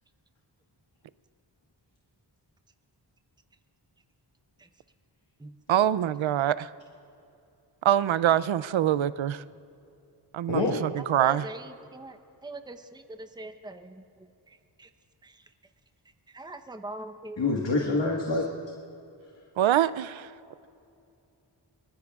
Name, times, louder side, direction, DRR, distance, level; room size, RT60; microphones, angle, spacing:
voice 1, 5.7-6.7 7.8-9.4 10.3-11.5 18.3-18.4 19.6-20.3, right 11 dB, 85° right, 17 dB, 0.5 m, -25 dB
voice 2, 10.5-10.8 17.4-18.4, left 3 dB, 70° left, -1 dB, 1.7 m, -26 dB
voice 3, 11.1-14.9 15.2-15.4 16.3-17.5, right 2 dB, 10° right, 7 dB, 0.8 m, -42 dB
24.0 x 20.0 x 2.4 m, 2.6 s
wide cardioid pair, 60°, 46 cm